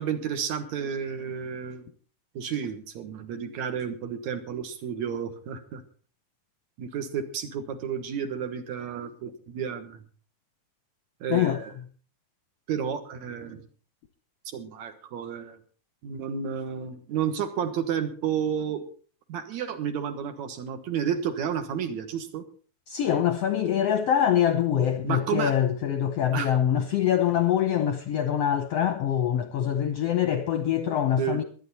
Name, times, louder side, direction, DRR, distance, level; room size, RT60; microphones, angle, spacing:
voice 1, 0.0-1.9 2.4-5.8 6.8-10.0 11.2-11.7 12.7-13.6 14.5-15.6 16.0-18.8 19.3-22.4 25.0-25.5 26.3-26.5 31.2-31.4, right 8 dB, 65° right, 2.5 m, -31 dB
voice 2, 22.9-31.4, left 10 dB, 70° left, 1.5 m, -24 dB
22.5 x 9.3 x 4.2 m
omnidirectional pair, 3.8 m